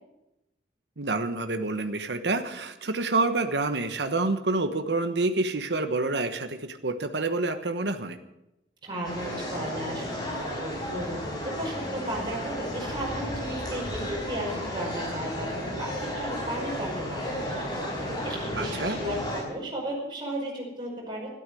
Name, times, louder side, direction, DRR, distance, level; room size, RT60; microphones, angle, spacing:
voice 1, 1.0-8.2 18.5-19.0, right 3 dB, 75° right, 8 dB, 1.2 m, -28 dB
voice 2, 8.8-21.3, right 1 dB, 25° right, -3 dB, 5.3 m, -35 dB
sound 1, 9.0-19.4, equal, 25° left, 5.5 m, -33 dB
13.0 x 12.0 x 7.7 m, 0.92 s
head